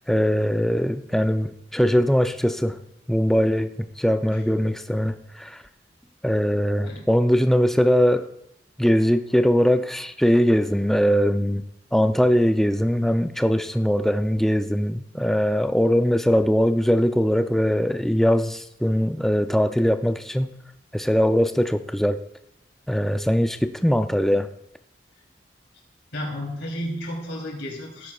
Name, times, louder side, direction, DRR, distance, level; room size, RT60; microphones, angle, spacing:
voice 1, 0.1-2.8 3.1-3.7 4.0-5.6 6.2-8.3 8.8-11.6 11.9-20.5 20.9-22.2 22.9-24.5, equal, ahead, 8 dB, 0.4 m, -21 dB
voice 2, 26.1-28.1, equal, 80° left, -1 dB, 3.2 m, -32 dB
16.5 x 9.6 x 2.4 m, 0.78 s
head